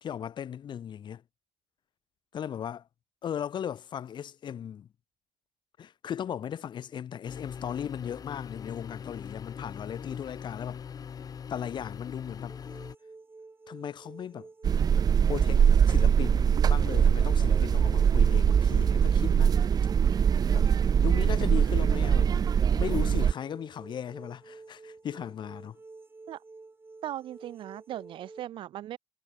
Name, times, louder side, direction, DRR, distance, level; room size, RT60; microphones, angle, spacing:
voice 1, 0.0-1.2 2.3-2.8 3.2-4.9 5.8-10.8 11.5-12.6 13.7-14.5 15.3-19.6 20.5-20.7 21.0-22.4 22.7-25.8, left 9 dB, 65° left, 2.0 m, -37 dB
sound 1, 7.3-13.0, left 7 dB, 45° left, 0.7 m, -41 dB
sound 2, 12.5-28.4, right 3 dB, 25° right, 4.4 m, -50 dB
sound 3, 14.6-23.3, right 7 dB, 50° right, 0.6 m, -22 dB
voice 2, 27.0-29.0, right 12 dB, 75° right, 2.0 m, -38 dB
supercardioid pair, 65°, 9 cm